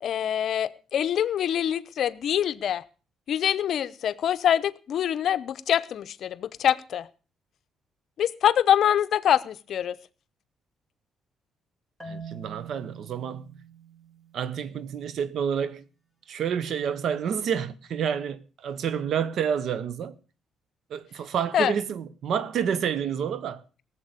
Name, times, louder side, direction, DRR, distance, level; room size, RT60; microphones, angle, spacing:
voice 1, 0.0-2.8 3.3-7.1 8.2-10.0 21.5-21.7, left 10 dB, 65° left, 0.7 m, -25 dB
Marimba xylophone, 12.0-15.0, right 5 dB, 5° right, 3.7 m, -44 dB
voice 2, 12.0-13.6 14.3-15.8 16.3-20.1 20.9-23.6, right 8 dB, 70° right, 1.1 m, -29 dB
17.5 x 7.5 x 6.6 m
cardioid pair, 110°, 0 cm